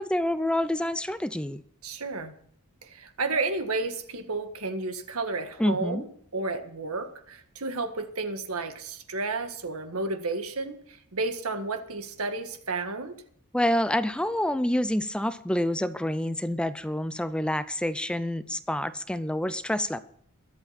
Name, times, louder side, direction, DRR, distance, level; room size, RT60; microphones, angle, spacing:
voice 1, 0.0-1.6 5.6-6.0 13.5-20.0, left 1 dB, 5° left, 12 dB, 0.5 m, -27 dB
voice 2, 1.8-2.4 2.8-6.1 6.3-13.2, right 3 dB, 75° right, 7 dB, 1.7 m, -32 dB
22.5 x 8.2 x 4.3 m, 0.66 s
head